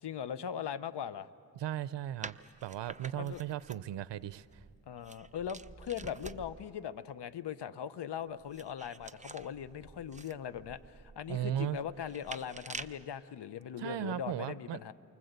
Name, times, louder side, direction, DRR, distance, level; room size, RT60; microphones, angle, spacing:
voice 1, 0.0-1.3 3.2-3.4 4.9-14.9, left 8 dB, 70° left, 14 dB, 0.9 m, -40 dB
voice 2, 1.6-2.4 2.6-4.6 11.3-11.8 13.8-14.8, right 11 dB, 85° right, 16 dB, 0.6 m, -36 dB
sound 1, 2.2-6.7 8.2-13.1, right 3 dB, 15° right, 0.8 m, -49 dB
29.0 x 24.5 x 8.1 m, 2.5 s
cardioid pair, 65°, 42 cm